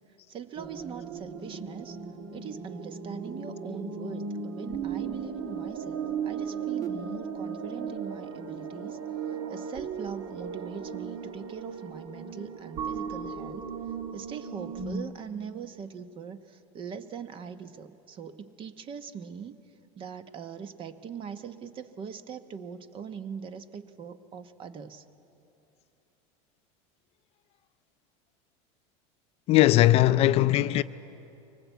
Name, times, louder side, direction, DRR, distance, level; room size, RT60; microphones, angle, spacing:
voice 1, 0.3-2.0 2.3-9.0 9.3-13.6 14.1-19.6 20.0-25.0, right 7 dB, 35° right, 1.0 m, -41 dB
sound 1, 0.6-15.0, right 6 dB, 50° right, 1.6 m, -36 dB
voice 2, 29.5-30.8, left 15 dB, 40° left, 0.4 m, -20 dB
24.0 x 19.0 x 8.2 m
supercardioid pair, 135°, 16 cm